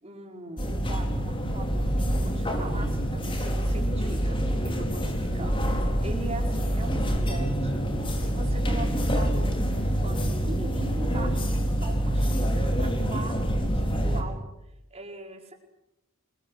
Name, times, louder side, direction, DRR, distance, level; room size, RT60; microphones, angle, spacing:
voice 1, 0.0-7.8 8.2-14.4 14.9-15.5, right 2 dB, 30° right, 2 dB, 4.9 m, -41 dB
sound 1, 0.6-14.2, equal, 25° left, 4.4 m, -26 dB
29.0 x 21.5 x 8.3 m, 0.87 s
head